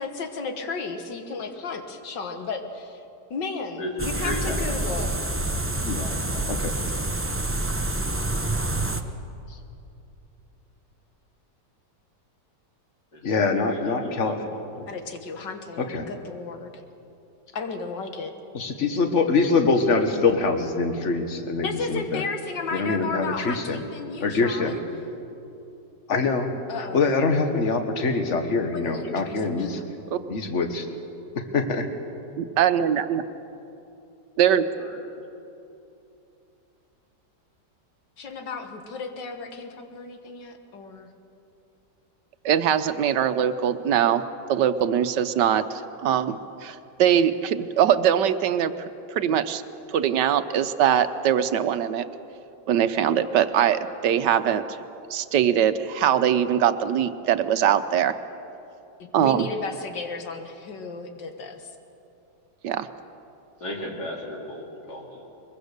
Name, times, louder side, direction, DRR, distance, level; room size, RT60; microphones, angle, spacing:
voice 1, 0.0-3.0 3.3-5.2 14.9-16.8 17.5-18.3 21.6-24.8 26.7-27.0 28.7-29.7 38.2-41.1 59.0-61.7, left 4 dB, 85° left, 6 dB, 2.1 m, -34 dB
voice 2, 3.8-4.6 5.8-6.6 13.1-14.7 34.8-35.0 63.6-65.2, left 1 dB, 65° left, -1 dB, 3.8 m, -35 dB
sound 1, 4.0-9.0, right 2 dB, 15° right, 0.4 m, -27 dB
voice 3, 13.2-14.4 15.9-16.1 18.5-22.2 22.7-23.8 24.2-24.8 26.1-26.5 26.9-29.8 30.3-30.9 31.5-31.8, left 4 dB, 45° left, 6 dB, 1.7 m, -24 dB
voice 4, 32.4-33.2 34.4-34.6 42.4-44.2 44.5-49.6 49.9-52.0 52.7-54.6 55.1-58.1 59.1-59.5 62.6-62.9, right 9 dB, 80° right, 11 dB, 1.4 m, -22 dB
22.5 x 22.0 x 6.7 m, 2.8 s
omnidirectional pair, 1.9 m